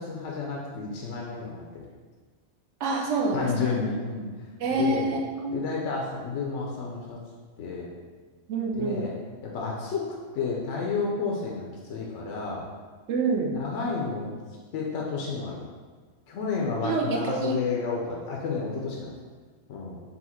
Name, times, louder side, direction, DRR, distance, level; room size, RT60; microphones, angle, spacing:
voice 1, 0.0-1.8 3.3-4.3 4.7-5.1 5.5-7.2 7.6-7.9 8.7-9.1 9.4-12.6 13.6-14.3 14.7-15.6 16.3-19.1 19.7-20.0, left 4 dB, 75° left, -2 dB, 0.9 m, -31 dB
voice 2, 2.8-3.8 4.6-5.6 8.5-9.1 13.1-13.5 16.8-17.6, right 3 dB, 80° right, 0 dB, 0.9 m, -27 dB
4.2 x 2.3 x 4.1 m, 1.4 s
omnidirectional pair, 1.2 m